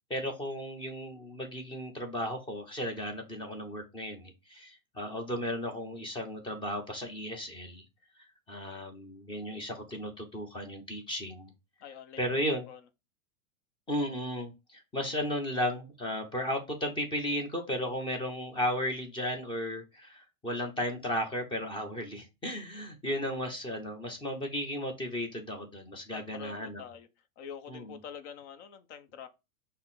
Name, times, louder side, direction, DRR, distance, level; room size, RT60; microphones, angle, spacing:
voice 1, 0.1-7.8 8.5-11.5 12.2-12.6 13.9-26.8 27.7-28.0, equal, 10° left, 0.7 m, -35 dB
voice 2, 11.8-12.2 12.7-12.8 26.1-27.1 27.4-29.3, left 8 dB, 55° left, 0.8 m, -45 dB
5.7 x 2.1 x 4.0 m
supercardioid pair, 145°, 42 cm